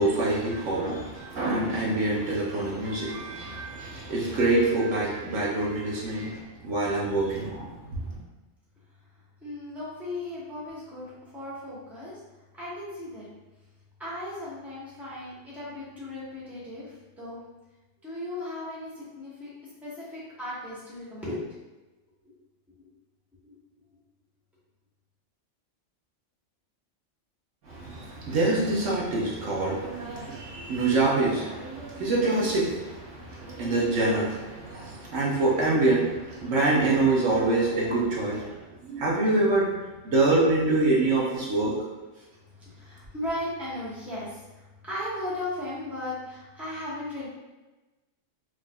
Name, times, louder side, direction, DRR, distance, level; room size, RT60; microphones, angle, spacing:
voice 1, 0.0-8.2 27.6-39.7 40.0-41.7, right 2 dB, 80° right, -5 dB, 1.2 m, -26 dB
voice 2, 9.4-12.2 12.5-13.3 14.0-17.4 18.0-19.5 19.8-21.4 22.2-22.3 22.8-22.9 23.4-23.5 23.9-24.0 42.6-47.3, left 1 dB, ahead, -9 dB, 1.1 m, -36 dB
4.8 x 2.5 x 2.3 m, 1.1 s
omnidirectional pair, 1.3 m